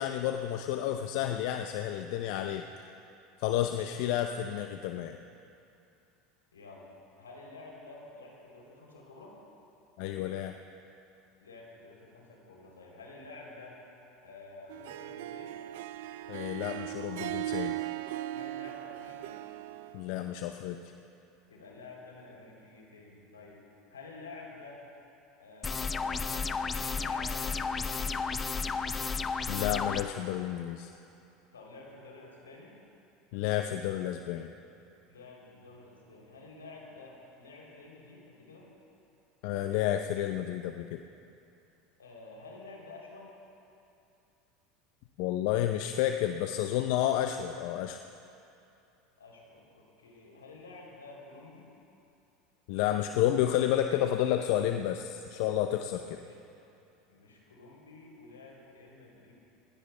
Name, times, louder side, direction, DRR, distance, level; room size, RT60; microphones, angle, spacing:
voice 1, 0.0-2.6 3.4-5.2 10.0-10.5 16.3-17.7 19.9-20.8 29.5-30.9 33.3-34.5 39.4-41.0 45.2-48.0 52.7-56.2, left 12 dB, 60° left, 6 dB, 0.6 m, -30 dB
voice 2, 3.6-4.1 6.5-6.8 7.2-9.3 11.4-13.8 14.2-15.6 18.3-19.4 21.5-23.6 23.9-24.8 25.4-28.6 31.5-32.8 35.1-38.7 42.0-43.3 49.2-51.7 56.0-56.4 57.1-59.3, left 3 dB, 85° left, -2 dB, 3.1 m, -50 dB
Harp, 14.7-20.0, right 14 dB, 70° right, 0.4 m, -38 dB
sound 1, 25.6-30.0, left 4 dB, 25° left, 0.7 m, -32 dB
29.5 x 16.0 x 2.2 m, 2.7 s
hypercardioid pair, 80°, 0 cm